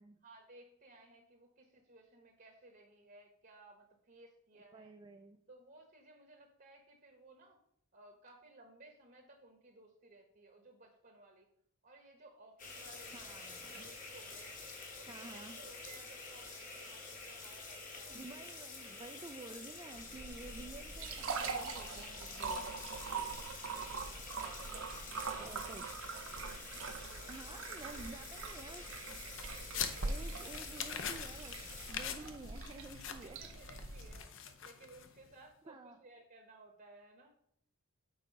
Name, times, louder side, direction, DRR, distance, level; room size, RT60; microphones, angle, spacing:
voice 1, 0.2-4.9 5.5-7.6 7.9-11.5 11.8-13.4 13.7-14.6 14.9-18.4 24.0-25.8 26.1-26.5 27.0-28.0 29.7-30.2 32.2-32.8 33.2-37.3, right 2 dB, 45° right, 3 dB, 1.0 m, -59 dB
voice 2, 4.6-5.4 13.1-13.9 15.1-15.6 18.1-22.6 24.7-24.9 25.4-25.9 27.3-29.2 30.0-31.6 31.9-33.4 35.7-36.1, right 3 dB, 20° right, 5 dB, 0.3 m, -51 dB
sound 1, 12.6-31.9, left 4 dB, 35° left, 1.2 m, -49 dB
sound 2, 20.0-34.2, right 4 dB, 65° right, 0.7 m, -43 dB
sound 3, 29.0-35.3, left 8 dB, 55° left, 0.6 m, -44 dB
6.5 x 4.2 x 5.2 m, 0.67 s
head